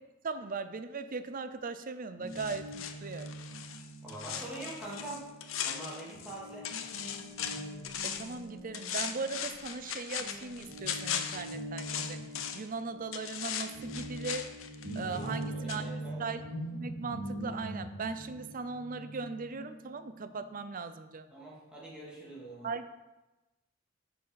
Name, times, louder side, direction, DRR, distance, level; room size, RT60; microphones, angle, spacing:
voice 1, 0.2-3.4 8.0-12.2 12.5-14.5 14.9-15.8 16.2-16.4 16.7-21.3 22.6-22.9, right 4 dB, 45° right, 11 dB, 0.6 m, -38 dB
Guitar, 2.2-9.9 10.2-20.6, right 1 dB, 75° right, 3.1 m, -43 dB
sound 1, 2.3-6.4 6.6-8.4 8.7-12.7 13.1-15.4 15.7-15.8, left 8 dB, 80° left, 0.8 m, -38 dB
voice 2, 4.0-5.3 5.6-6.7 15.2-16.2 21.3-22.7, right 2 dB, 5° right, -7 dB, 3.0 m, -44 dB
7.4 x 7.0 x 5.7 m, 1.1 s
head